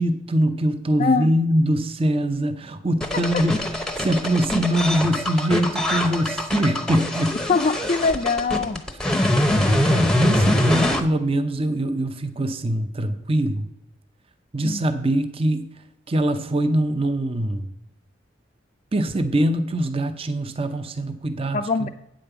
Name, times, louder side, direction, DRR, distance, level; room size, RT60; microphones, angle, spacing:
voice 1, 0.0-7.4 9.9-13.7 14.5-15.6 16.1-17.7 18.9-21.9, right 1 dB, 30° right, 9 dB, 0.6 m, -23 dB
voice 2, 1.0-1.3 3.1-3.2 7.5-8.8 14.6-14.8 21.5-21.9, left 4 dB, 35° left, 4 dB, 0.4 m, -22 dB
sound 1, 3.0-11.0, left 1 dB, 5° left, 0.8 m, -23 dB
8.9 x 5.2 x 6.9 m, 0.86 s
head